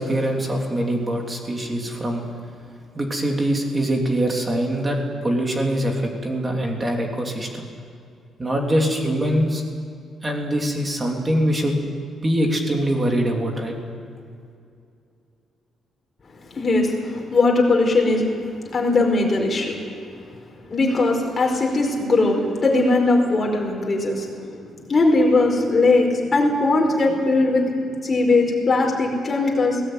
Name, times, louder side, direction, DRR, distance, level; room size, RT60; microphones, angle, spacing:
voice 1, 0.0-2.2 2.9-7.7 8.4-9.6 10.2-11.8 12.2-13.7, right 1 dB, 15° right, 1 dB, 3.2 m, -23 dB
voice 2, 16.5-19.8 20.7-29.8, left 2 dB, 25° left, 0 dB, 4.7 m, -20 dB
21.0 x 18.5 x 9.3 m, 2.4 s
cardioid pair, 165°, 0 cm